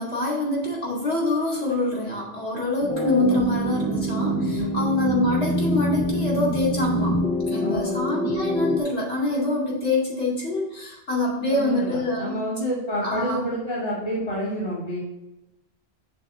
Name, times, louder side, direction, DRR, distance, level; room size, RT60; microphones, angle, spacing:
voice 1, 0.0-7.2 7.5-12.4 13.0-13.5, left 2 dB, 75° left, -4 dB, 2.7 m, -25 dB
sound 1, 2.9-8.8, equal, 10° left, 0.6 m, -25 dB
voice 2, 7.6-8.0 11.5-15.0, equal, 60° left, -5 dB, 2.0 m, -29 dB
6.7 x 4.2 x 6.0 m, 0.97 s
omnidirectional pair, 1.1 m